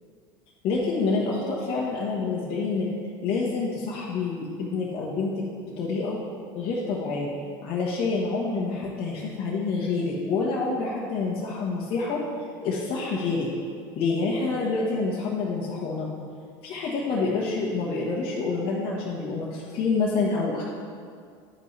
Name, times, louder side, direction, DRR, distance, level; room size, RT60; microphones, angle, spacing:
voice 1, 0.6-2.9 3.2-5.4 5.8-6.2 6.5-7.3 7.6-12.2 12.6-13.5 14.0-16.1 16.6-20.6, left 4 dB, 60° left, -5 dB, 1.3 m, -27 dB
9.9 x 5.5 x 3.3 m, 2.2 s
supercardioid pair, 110°, 11 cm